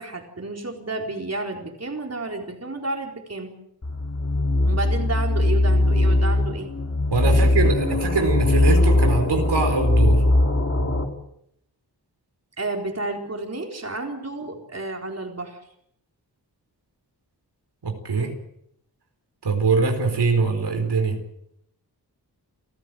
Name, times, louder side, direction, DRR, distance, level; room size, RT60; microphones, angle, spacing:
voice 1, 0.0-3.5 4.6-6.7 7.2-7.6 12.6-15.6, right 2 dB, 40° right, 2 dB, 4.2 m, -31 dB
sound 1, 3.8-11.0, left 1 dB, 40° left, 3.9 m, -20 dB
voice 2, 7.1-10.2 17.8-18.3 19.4-21.2, right 4 dB, 80° right, 5 dB, 4.5 m, -23 dB
29.5 x 15.0 x 7.8 m, 0.74 s
wide cardioid pair, 100°, 39 cm